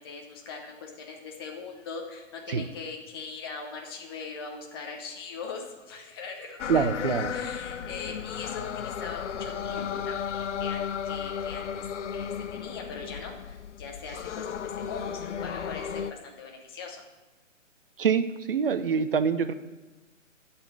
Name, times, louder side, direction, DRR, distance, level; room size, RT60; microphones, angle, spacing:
voice 1, 0.0-11.8 12.1-17.0, left 4 dB, 20° left, 1 dB, 0.9 m, -41 dB
sound 1, 6.6-16.1, left 8 dB, 65° left, 0.6 m, -34 dB
voice 2, 6.7-7.3 18.0-19.5, right 6 dB, 45° right, 11 dB, 0.7 m, -25 dB
12.5 x 4.4 x 8.3 m, 1.2 s
hypercardioid pair, 165°, 39 cm